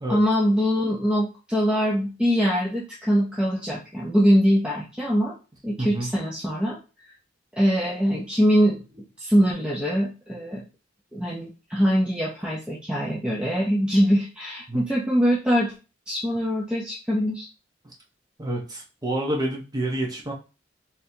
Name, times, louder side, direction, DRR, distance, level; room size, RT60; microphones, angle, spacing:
voice 1, 0.1-5.3 5.6-6.8 7.5-10.6 11.1-15.7 16.1-17.5, equal, 5° right, -5 dB, 0.6 m, -23 dB
voice 2, 18.4-20.3, right 1 dB, 20° right, -1 dB, 0.9 m, -28 dB
4.0 x 2.8 x 2.7 m, 0.32 s
head